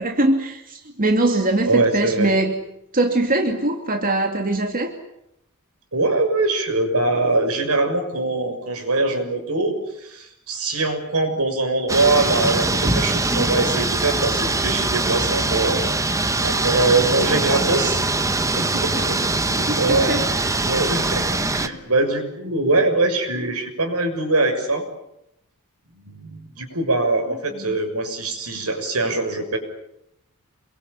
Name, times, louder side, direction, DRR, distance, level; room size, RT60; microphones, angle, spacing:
voice 1, 0.0-2.7 2.9-4.9 17.1-17.7 19.0-19.2 19.7-20.3 27.6-27.8, right 2 dB, 40° right, 3 dB, 2.6 m, -22 dB
voice 2, 1.7-2.3 5.9-15.8 16.4-18.0 18.5-19.2 19.5-20.1 20.6-24.8 26.0-29.6, right 2 dB, 85° right, 6 dB, 6.6 m, -22 dB
sound 1, 11.9-21.7, right 2 dB, 15° right, 1.1 m, -22 dB
28.5 x 23.0 x 8.7 m, 0.82 s
head